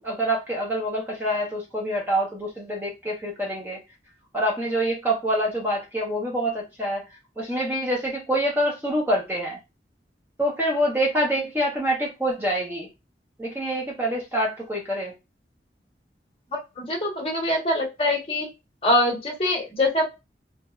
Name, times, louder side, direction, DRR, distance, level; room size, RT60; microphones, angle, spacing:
voice 1, 0.0-3.8 4.3-7.0 7.4-9.6 10.4-12.9 13.4-15.1, equal, 10° right, -2 dB, 0.5 m, -26 dB
voice 2, 16.8-18.5 18.8-20.0, left 1 dB, 30° left, -1 dB, 1.0 m, -23 dB
3.0 x 2.0 x 2.3 m, 0.24 s
head